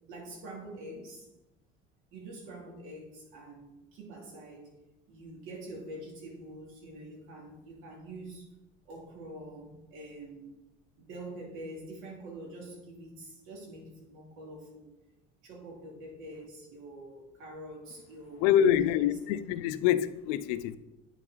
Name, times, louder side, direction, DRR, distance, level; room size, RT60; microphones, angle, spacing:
voice 1, 0.1-1.3 2.1-4.7 5.1-8.5 8.9-10.6 11.0-14.9 15.4-19.2, right 1 dB, 70° right, 2.8 m, -45 dB
voice 2, 18.4-20.8, left 10 dB, 85° left, 0.5 m, -26 dB
8.9 x 6.0 x 4.0 m
cardioid pair, 115°, 21 cm